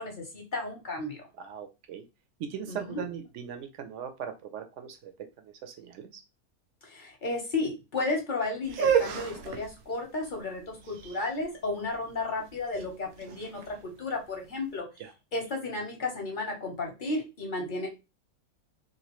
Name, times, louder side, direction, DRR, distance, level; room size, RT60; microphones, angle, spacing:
voice 1, 0.0-1.2 2.7-2.8 6.8-14.8 15.3-17.9, left 3 dB, 40° left, 1 dB, 0.9 m, -33 dB
voice 2, 1.3-2.0 2.4-5.1 5.4-6.2 15.0-15.1, right 8 dB, 70° right, 7 dB, 0.8 m, -40 dB
sound 1, 8.6-14.6, right 8 dB, 85° right, 1.1 m, -32 dB
3.0 x 2.5 x 2.9 m, 0.27 s
omnidirectional pair, 1.5 m